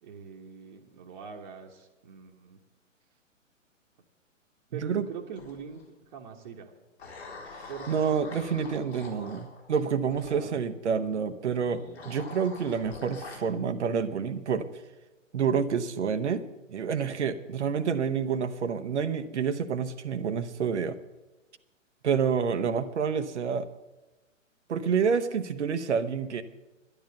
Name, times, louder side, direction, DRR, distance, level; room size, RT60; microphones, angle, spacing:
voice 1, 0.0-2.6 4.7-5.8 6.1-6.7 7.7-8.0 10.3-10.6, right 6 dB, 35° right, -1 dB, 1.4 m, -42 dB
voice 2, 4.7-5.0 7.5-14.7 15.3-21.0 22.0-23.7 24.7-26.4, right 6 dB, 60° right, 9 dB, 1.0 m, -28 dB
sound 1, 5.4-5.8 7.0-10.4 11.6-13.4, left 3 dB, 55° left, 4.2 m, -45 dB
11.5 x 11.0 x 6.9 m, 1.1 s
figure-of-eight pair, 125°, 39 cm